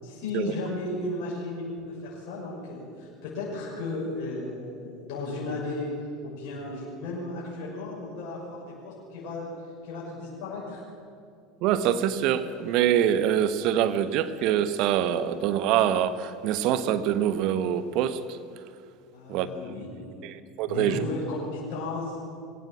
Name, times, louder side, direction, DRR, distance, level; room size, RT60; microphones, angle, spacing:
voice 1, 0.0-5.9 6.2-9.5 9.8-10.8 19.1-20.1 20.7-22.2, left 2 dB, 55° left, -6 dB, 6.4 m, -34 dB
voice 2, 11.6-18.4 19.3-19.5 20.2-21.0, right 10 dB, 50° right, 12 dB, 1.2 m, -25 dB
22.5 x 17.0 x 7.6 m, 2.3 s
figure-of-eight pair, 75°, 0 cm